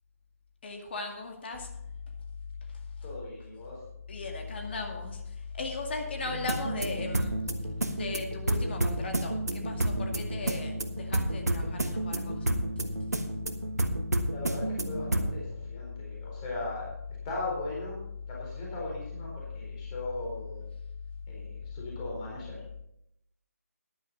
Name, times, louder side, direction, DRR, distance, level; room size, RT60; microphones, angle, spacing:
voice 1, 0.6-1.7 4.1-7.5 7.9-12.5, left 3 dB, 40° left, 3 dB, 2.0 m, -36 dB
voice 2, 3.0-3.8 14.3-16.9 17.2-18.0 18.3-20.6 21.3-22.6, left 2 dB, 20° left, -4 dB, 4.1 m, -38 dB
sound 1, 6.3-15.4, right 1 dB, 85° right, 1.5 m, -31 dB
13.5 x 10.5 x 4.1 m, 0.81 s
figure-of-eight pair, 155°, 9 cm